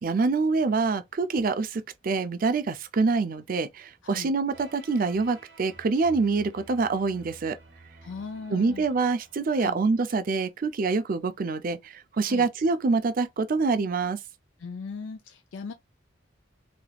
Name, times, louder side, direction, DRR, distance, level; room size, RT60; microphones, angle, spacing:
voice 1, 0.0-7.6 8.5-14.2, right 4 dB, 45° right, 0.4 m, -26 dB
voice 2, 4.0-4.3 8.0-8.8 9.6-9.8 12.3-12.5 14.6-15.7, left 5 dB, 80° left, 0.4 m, -38 dB
sound 1, 4.5-10.3, right 2 dB, 75° right, 1.3 m, -52 dB
3.3 x 2.9 x 2.3 m
head